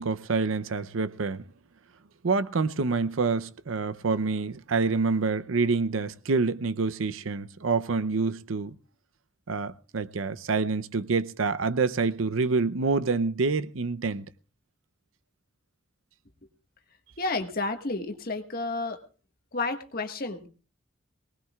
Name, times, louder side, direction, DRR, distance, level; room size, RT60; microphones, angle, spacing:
voice 1, 0.0-1.4 2.2-8.7 9.5-14.3, right 4 dB, 80° right, 0.6 m, -27 dB
voice 2, 17.2-19.0 19.5-20.5, left 3 dB, 45° left, 1.6 m, -31 dB
23.0 x 19.0 x 2.4 m
head